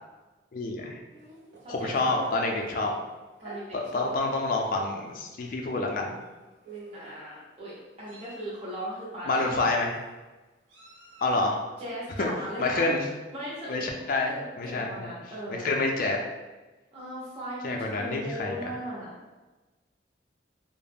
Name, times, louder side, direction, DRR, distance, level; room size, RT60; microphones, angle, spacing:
voice 1, 0.5-1.0 1.7-3.0 3.7-6.1 9.3-10.0 11.2-11.6 12.2-12.3 12.6-13.1 13.7-15.1 15.5-16.2 17.6-18.6, left 2 dB, 45° left, 1 dB, 0.3 m, -28 dB
Meow, 1.1-2.7 3.4-3.6 4.4-4.6 4.9-5.1 6.2-6.3 6.6-7.2 7.8-8.5 9.3-10.1 10.7-11.4, right 3 dB, 75° right, 0.7 m, -46 dB
voice 2, 1.6-2.1 3.4-4.1 6.9-9.7 11.8-12.9 13.3-13.8 14.3-15.9 16.9-19.1, equal, 35° right, -8 dB, 0.7 m, -38 dB
2.3 x 2.0 x 3.3 m, 1.2 s
head